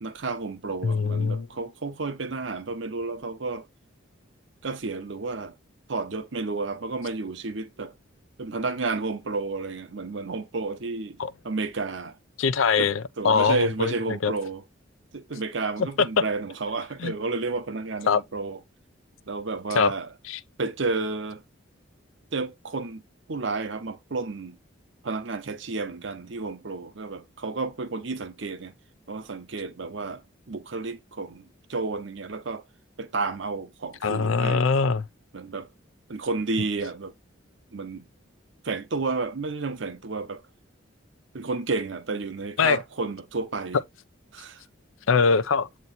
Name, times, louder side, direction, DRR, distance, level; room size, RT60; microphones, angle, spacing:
voice 1, 0.0-3.7 4.6-5.5 5.9-7.9 8.4-11.2 11.4-12.1 12.8-14.6 15.1-18.6 19.3-20.1 20.6-21.4 22.3-23.0 23.3-24.6 25.0-28.7 29.1-30.2 30.5-31.4 31.7-32.6 33.0-34.7 35.3-35.7 36.1-37.1 37.7-38.0 38.6-40.4 41.3-43.8 44.3-44.6, right 3 dB, 65° right, 0.7 m, -31 dB
voice 2, 0.8-1.5 11.2-11.3 12.4-14.3 16.0-16.2 17.0-17.1 18.1-18.2 19.7-19.9 20.3-20.4 34.0-35.1 42.6-42.8 45.1-45.7, left 5 dB, 80° left, 0.5 m, -22 dB
7.9 x 3.0 x 4.0 m
head